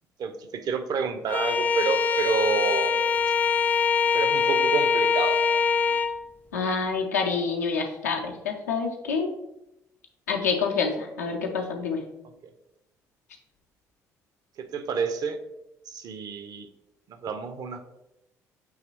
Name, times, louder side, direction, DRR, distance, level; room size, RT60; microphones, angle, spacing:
voice 1, 0.2-3.0 4.1-5.4 14.6-15.4 15.9-16.7 17.2-17.8, right 6 dB, 45° right, 8 dB, 0.5 m, -29 dB
Bowed string instrument, 1.3-6.2, left 6 dB, 20° left, 0.3 m, -23 dB
voice 2, 6.5-9.3 10.3-12.0, left 5 dB, 80° left, 1 dB, 0.6 m, -27 dB
6.3 x 2.9 x 2.9 m, 0.90 s
figure-of-eight pair, 45°, 9 cm